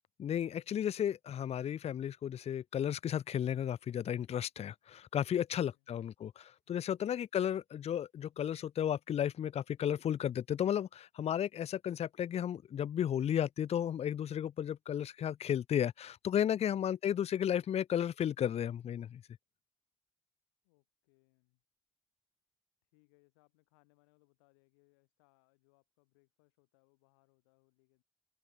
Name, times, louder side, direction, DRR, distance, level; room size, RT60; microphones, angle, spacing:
voice 1, 0.2-19.2, left 9 dB, 50° left, 0.5 m, -33 dB
voice 2, 5.3-5.9 6.6-7.2 20.6-21.6 22.8-28.0, left 30 dB, 85° left, 6.3 m, -73 dB
hypercardioid pair, 40°, 13 cm